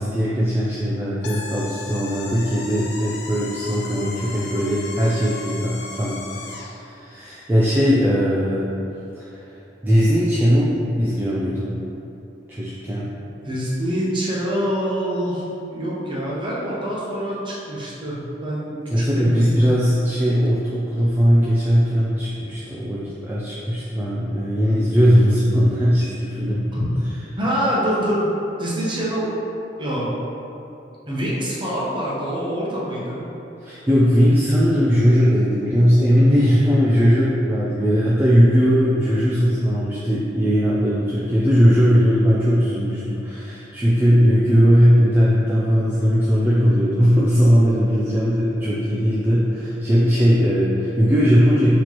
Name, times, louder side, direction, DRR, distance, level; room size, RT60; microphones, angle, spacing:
voice 1, 0.0-8.7 9.2-9.3 9.8-11.8 12.5-13.1 18.9-26.7 33.6-51.8, equal, 10° right, -8 dB, 0.3 m, -19 dB
sound 1, 1.2-6.8, left 3 dB, 65° left, 0.4 m, -36 dB
voice 2, 13.4-19.7 26.7-26.9 27.4-28.3 28.6-29.4 29.8-30.1 31.1-33.2, equal, 25° right, -6 dB, 0.8 m, -25 dB
4.2 x 3.0 x 3.0 m, 2.8 s
head